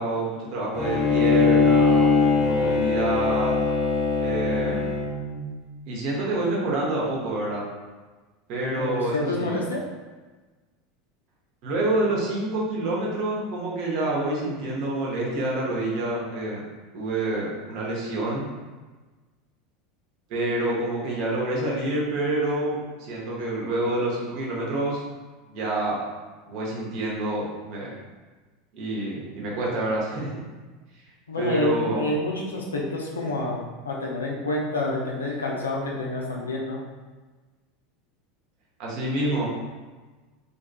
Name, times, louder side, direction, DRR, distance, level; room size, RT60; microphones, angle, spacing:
voice 1, 0.0-3.5 4.2-4.9 5.9-7.6 8.5-9.6 11.6-16.7 16.9-18.5 20.3-25.0 25.5-26.0 26.5-27.9 28.7-30.4 31.4-32.1 38.8-39.5, right 2 dB, 55° right, -4 dB, 0.7 m, -27 dB
Bowed string instrument, 0.7-5.4, left 4 dB, 25° left, 1.0 m, -21 dB
voice 2, 8.8-9.8 31.3-36.8, left 2 dB, 80° left, -2 dB, 0.4 m, -28 dB
2.6 x 2.3 x 2.2 m, 1.3 s
figure-of-eight pair, 80°, 0 cm